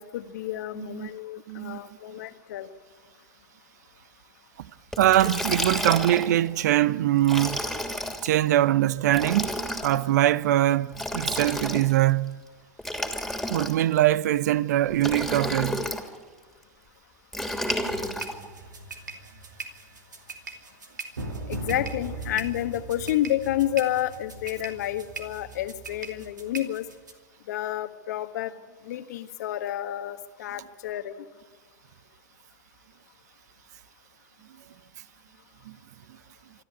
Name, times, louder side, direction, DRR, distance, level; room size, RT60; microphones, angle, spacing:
voice 1, 0.0-2.7 21.5-26.8 27.5-28.5 28.8-31.3, left 13 dB, 65° left, 1.4 m, -30 dB
voice 2, 0.7-1.1 1.5-1.8 5.0-7.6 8.2-9.6 9.8-12.4 13.5-15.8 35.7-35.8, right 13 dB, 70° right, 0.8 m, -22 dB
Liquid, 4.9-6.4 7.2-8.3 9.1-10.0 10.9-12.0 12.8-14.0 15.0-16.1 17.3-18.3, left 1 dB, ahead, 3.0 m, -31 dB
sound 1, 17.5-27.1, right 2 dB, 90° right, 2.6 m, -39 dB
26.0 x 13.0 x 9.8 m
hypercardioid pair, 95°, 10 cm